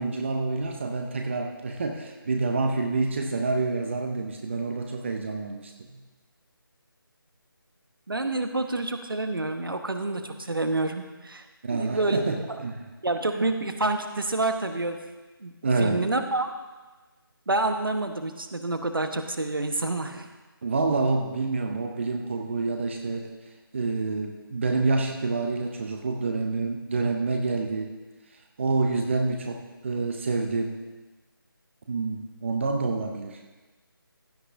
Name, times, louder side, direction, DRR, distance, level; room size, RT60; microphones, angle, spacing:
voice 1, 0.0-6.0 11.6-12.8 15.6-16.1 20.6-23.3 23.7-27.9 28.6-30.8 31.9-33.4, right 3 dB, 30° right, 4 dB, 0.7 m, -27 dB
voice 2, 8.1-12.2 12.5-12.6 13.0-15.0 15.4-15.5 15.8-16.5 17.5-20.3, right 2 dB, 65° right, 7 dB, 1.1 m, -28 dB
15.5 x 9.7 x 2.6 m, 1.2 s
figure-of-eight pair, 155°, 12 cm